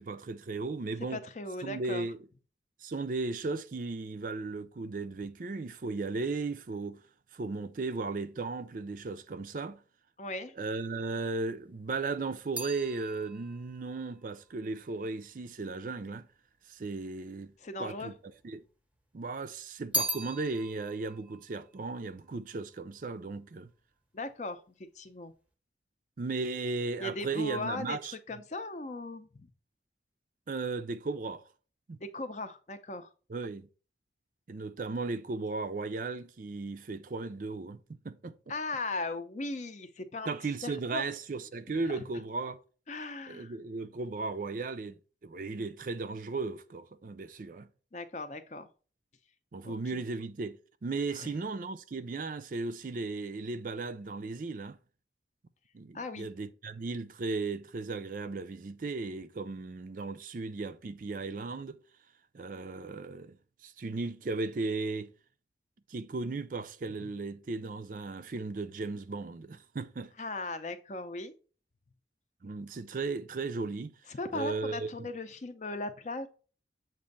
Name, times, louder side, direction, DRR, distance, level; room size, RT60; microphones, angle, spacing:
voice 1, 0.0-1.2 1.6-2.2 2.8-7.0 7.3-9.8 10.6-16.3 16.7-17.5 17.8-18.1 18.4-18.6 19.1-23.7 26.2-28.1 30.5-31.5 31.9-32.0 33.3-33.7 34.5-38.3 40.3-42.6 43.3-45.0 45.2-47.7 49.5-54.8 55.7-61.8 62.3-63.4 63.6-65.1 65.9-70.1 72.4-73.9 74.3-75.1, right 3 dB, 50° right, 0.4 m, -36 dB
voice 2, 1.1-2.1 10.2-10.6 17.6-18.1 24.1-25.3 27.0-28.0 28.3-29.5 32.0-33.1 38.5-40.3 40.6-41.0 41.7-42.0 42.9-43.5 47.9-48.7 49.6-50.0 51.1-51.3 55.9-56.3 70.2-71.3 74.1-76.3, left 2 dB, 40° left, 0.5 m, -38 dB
sound 1, 11.6-16.0 16.8-17.6 17.9-19.0 19.3-22.9 23.2-23.7, equal, 10° right, 0.7 m, -40 dB
7.4 x 2.6 x 5.2 m
head